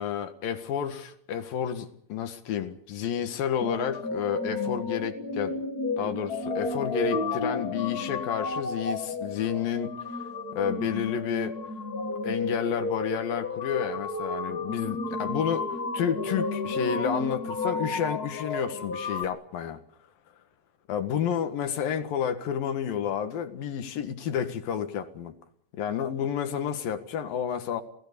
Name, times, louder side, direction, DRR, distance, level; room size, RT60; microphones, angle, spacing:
voice 1, 0.0-5.6 6.0-10.2 10.5-11.6 12.2-19.8 20.9-25.3 25.7-27.8, left 8 dB, 80° left, 9 dB, 3.4 m, -30 dB
sound 1, 3.6-19.2, left 3 dB, 35° left, 1.6 m, -32 dB
26.5 x 18.5 x 6.9 m, 0.66 s
omnidirectional pair, 4.0 m